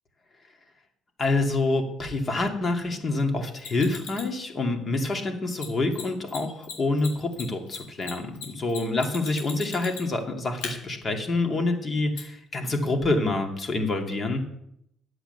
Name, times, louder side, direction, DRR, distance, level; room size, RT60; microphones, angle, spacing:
voice 1, 1.2-14.5, left 2 dB, 35° left, 4 dB, 2.6 m, -27 dB
Mechanisms, 3.6-4.3 5.5-5.6 5.9-6.0 6.3-6.4 6.6-10.2 10.6-10.7 12.2-12.3, left 6 dB, 85° left, 3.4 m, -37 dB
10.5 x 8.0 x 8.1 m, 0.76 s
cardioid pair, 90°, 0 cm